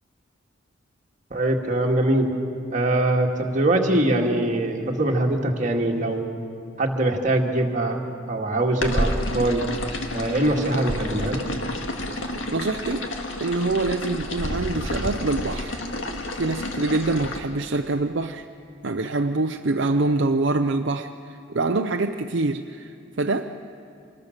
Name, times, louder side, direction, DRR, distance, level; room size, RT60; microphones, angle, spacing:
voice 1, 1.3-2.3 2.7-6.3 6.8-8.0 8.3-9.7 10.1-11.4, right 1 dB, 40° right, 1 dB, 2.0 m, -22 dB
sound 1, 8.8-17.4, left 1 dB, 80° left, 1.9 m, -30 dB
voice 2, 12.1-13.1 13.4-15.8 16.3-18.5 18.8-23.6, right 2 dB, 60° right, 5 dB, 0.6 m, -25 dB
25.5 x 21.0 x 6.6 m, 2.5 s
head